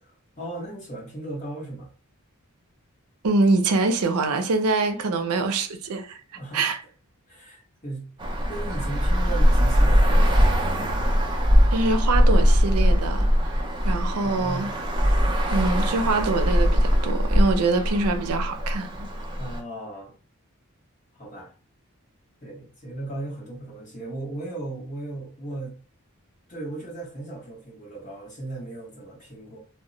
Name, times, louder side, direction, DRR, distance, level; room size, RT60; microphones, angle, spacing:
voice 1, 0.0-1.9 6.3-6.7 7.3-10.6 14.2-14.8 19.4-20.1 21.1-21.5 22.4-25.7 26.5-29.6, right 2 dB, 35° left, 0.9 m, -36 dB
voice 2, 3.2-6.2 6.5-6.8 11.3-11.4 11.7-14.7 15.5-19.1, right 3 dB, 85° right, 0.5 m, -24 dB
Traffic noise roadway noise, 8.2-19.6, equal, 20° right, 0.3 m, -21 dB
2.1 x 2.0 x 3.7 m
head